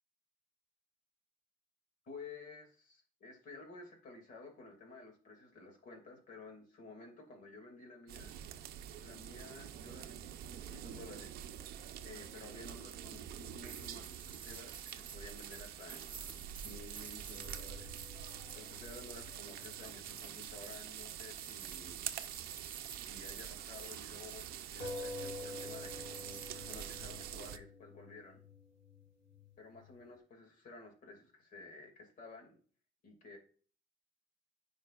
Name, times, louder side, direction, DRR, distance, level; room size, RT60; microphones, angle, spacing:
voice 1, 2.0-8.3 9.0-11.4 12.0-17.9 18.5-22.1 22.9-28.4 29.6-32.6 33.0-33.4, left 3 dB, 45° left, 3 dB, 2.5 m, -53 dB
sound 1, 8.1-27.6, right 10 dB, 55° right, 0.7 m, -46 dB
sound 2, 13.6-27.0, right 6 dB, 25° right, 1.0 m, -52 dB
sound 3, 17.3-21.2 21.5-21.6 24.8-30.0, left 2 dB, 70° left, 3.9 m, -49 dB
14.0 x 5.2 x 2.5 m, 0.42 s
cardioid pair, 170°, 18 cm